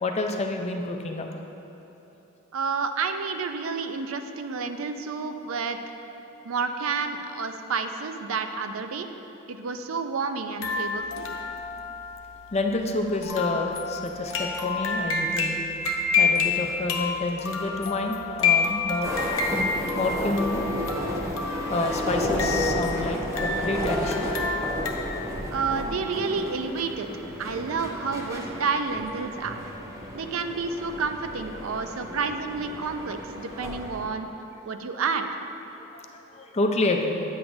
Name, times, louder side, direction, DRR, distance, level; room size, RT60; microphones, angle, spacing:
voice 1, 0.0-1.3 12.5-15.6 16.2-19.1 19.6-21.1 21.7-24.3 25.1-25.2 35.9-37.2, left 2 dB, 30° left, 3 dB, 0.4 m, -29 dB
voice 2, 2.5-5.8 6.4-9.1 9.5-11.3 25.5-27.1 27.4-29.6 30.1-34.3 34.6-35.3, right 4 dB, 85° right, 7 dB, 0.4 m, -30 dB
sound 1, 10.6-24.9, left 5 dB, 80° left, 0.7 m, -29 dB
sound 2, 19.0-34.0, equal, 15° right, 0.8 m, -32 dB
9.0 x 7.8 x 2.6 m, 3.0 s
head